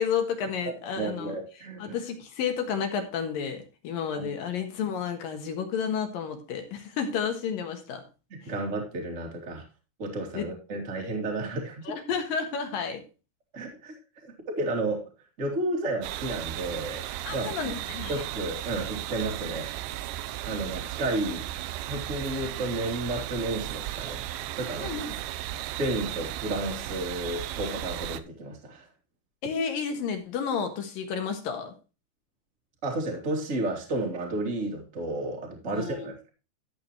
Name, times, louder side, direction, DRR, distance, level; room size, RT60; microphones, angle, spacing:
voice 1, 0.0-1.3 1.8-8.0 8.4-8.5 10.3-10.4 11.0-11.1 11.9-13.0 17.2-18.3 24.8-25.1 29.4-31.7 35.7-36.1, left 6 dB, 60° left, 5 dB, 2.8 m, -31 dB
voice 2, 0.6-2.0 4.2-4.3 8.3-9.6 10.0-11.9 13.5-13.9 14.2-15.1 15.4-17.6 18.1-19.7 20.4-21.5 21.9-24.2 24.5-24.9 25.6-28.9 32.8-36.3, right 2 dB, 20° right, 1 dB, 2.2 m, -32 dB
sound 1, 16.0-28.2, right 13 dB, 80° right, 2.8 m, -35 dB
13.5 x 8.3 x 3.1 m, 0.31 s
omnidirectional pair, 5.1 m